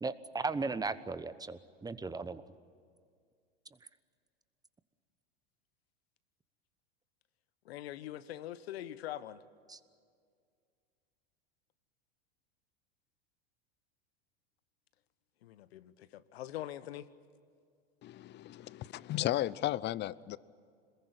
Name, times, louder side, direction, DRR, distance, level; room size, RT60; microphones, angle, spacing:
voice 1, 0.0-2.4 9.7-9.8, right 3 dB, 10° right, 1.0 m, -36 dB
voice 2, 7.6-9.4 15.4-17.1, left 13 dB, 75° left, 1.2 m, -43 dB
voice 3, 18.0-20.4, left 14 dB, 35° left, 0.7 m, -34 dB
26.5 x 21.5 x 9.9 m
hypercardioid pair, 100°, 31 cm